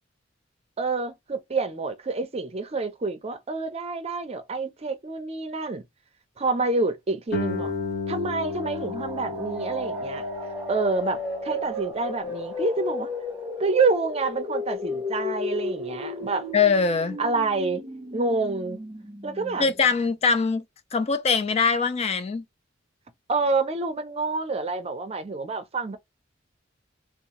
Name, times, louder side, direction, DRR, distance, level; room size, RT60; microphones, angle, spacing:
voice 1, 0.8-5.8 6.4-7.7 8.1-10.2 10.7-13.1 13.6-16.5 17.2-17.8 18.1-18.8 19.2-19.6 23.3-26.0, right 3 dB, 35° right, 0.5 m, -27 dB
Guitar, 7.3-12.7, left 4 dB, 60° left, 1.1 m, -34 dB
sound 1, 8.3-20.0, left 2 dB, 5° right, 1.1 m, -34 dB
voice 2, 16.5-17.2 19.6-20.6 20.9-22.4, left 5 dB, 30° left, 0.3 m, -22 dB
2.7 x 2.1 x 2.9 m
head